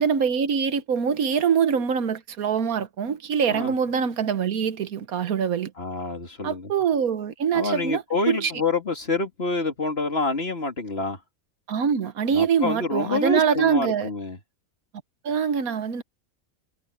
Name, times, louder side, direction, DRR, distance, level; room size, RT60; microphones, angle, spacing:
voice 1, 0.0-5.7 6.4-8.5 11.7-14.1 15.2-16.0, right 7 dB, 90° right, 1.5 m, -24 dB
voice 2, 5.8-6.7 7.5-11.2 12.3-14.4, left 3 dB, 45° left, 3.1 m, -27 dB
omnidirectional pair, 1.5 m